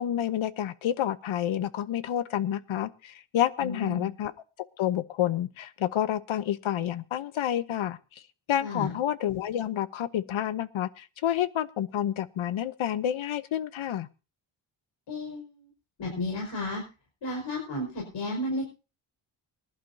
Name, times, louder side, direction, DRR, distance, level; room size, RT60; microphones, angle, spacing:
voice 1, 0.0-4.3 4.8-8.0 8.5-14.1, left 11 dB, 75° left, 14 dB, 1.0 m, -29 dB
voice 2, 3.6-4.1 8.6-8.9 15.1-15.7 16.0-16.8 17.2-18.7, left 2 dB, 60° left, 0 dB, 5.3 m, -33 dB
24.5 x 11.0 x 2.8 m, 0.33 s
wide cardioid pair, 135°, 48 cm